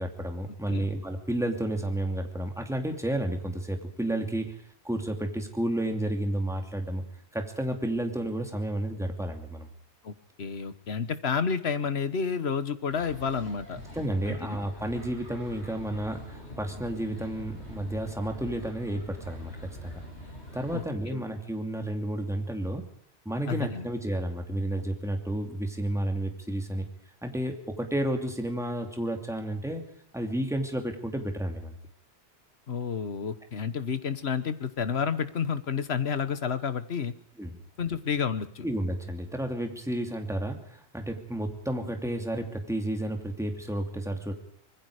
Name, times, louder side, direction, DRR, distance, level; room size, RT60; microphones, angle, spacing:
voice 1, 0.0-7.0 7.3-9.7 13.9-20.0 20.5-22.9 23.2-26.9 27.2-29.8 30.1-31.8 37.4-37.6 38.6-44.3, right 1 dB, 5° right, 4 dB, 2.7 m, -31 dB
voice 2, 10.0-13.8 14.3-14.6 20.7-20.8 21.1-21.2 23.5-23.9 32.7-37.1 37.8-38.6, left 6 dB, 70° left, 12 dB, 1.5 m, -30 dB
sound 1, 12.9-20.8, left 1 dB, 90° left, 6.1 m, -44 dB
25.5 x 20.5 x 5.0 m, 0.66 s
omnidirectional pair, 1.1 m